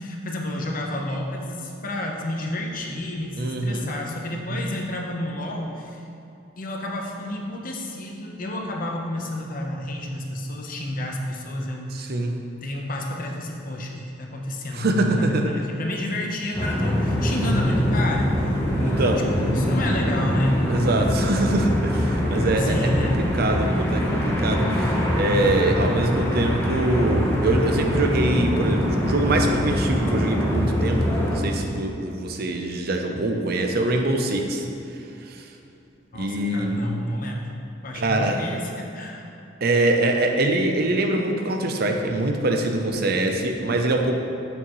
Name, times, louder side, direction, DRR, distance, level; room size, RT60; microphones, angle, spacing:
voice 1, 0.0-6.0 6.6-12.1 12.6-18.4 18.9-20.6 22.6-23.1 25.4-25.8 36.1-37.5 37.8-39.3, left 1 dB, 45° left, 0 dB, 0.9 m, -30 dB
voice 2, 3.4-3.9 4.5-4.6 11.9-12.4 14.7-15.5 18.8-19.3 20.7-23.1 23.3-34.7 35.3-35.4 36.1-36.8 37.9-38.4 39.6-44.2, right 2 dB, 55° right, 3 dB, 0.6 m, -24 dB
sound 1, 16.5-31.4, equal, 15° left, 1.0 m, -23 dB
8.7 x 6.7 x 3.1 m, 2.7 s
head